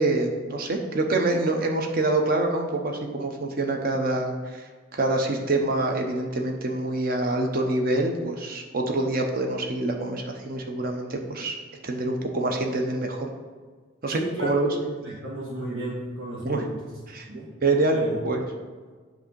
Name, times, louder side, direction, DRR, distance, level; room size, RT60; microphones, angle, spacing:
voice 1, 0.0-11.6 11.8-13.3 14.0-14.7 16.4-16.6 17.1-17.3 17.6-18.4, right 2 dB, 45° right, 3 dB, 0.7 m, -26 dB
voice 2, 14.1-16.9 17.3-17.5 17.9-18.1, right 1 dB, 80° right, -8 dB, 1.4 m, -34 dB
7.4 x 2.7 x 5.2 m, 1.5 s
head